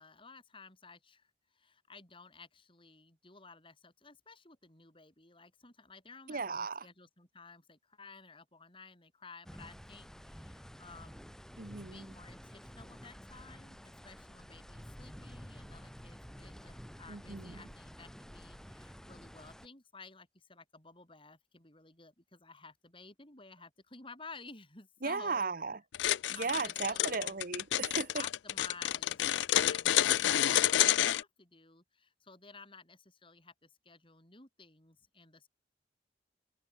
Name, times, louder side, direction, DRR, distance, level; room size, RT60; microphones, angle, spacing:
voice 1, 0.0-11.3 11.9-25.5 26.3-27.4 28.2-35.5, left 4 dB, 30° left, 7.6 m, -54 dB
voice 2, 6.3-6.9 11.6-12.1 17.1-17.5 25.0-25.8 26.3-28.2, right 4 dB, 50° right, 1.0 m, -36 dB
sound 1, 9.5-19.7, equal, 5° left, 1.6 m, -51 dB
sound 2, 25.9-31.2, left 12 dB, 85° left, 0.4 m, -29 dB
head